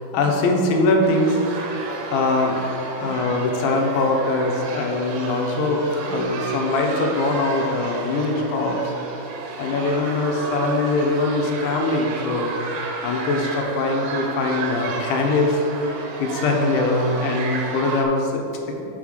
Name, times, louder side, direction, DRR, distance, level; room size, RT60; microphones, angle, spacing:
voice 1, 0.0-1.4 1.8-1.9 2.1-2.6 3.0-8.9 9.6-12.5 13.0-18.9, left 2 dB, 80° left, 1 dB, 3.3 m, -22 dB
sound 1, 1.0-18.0, right 3 dB, 70° right, 2.5 m, -32 dB
6.9 x 5.6 x 6.5 m, 2.8 s
omnidirectional pair, 5.3 m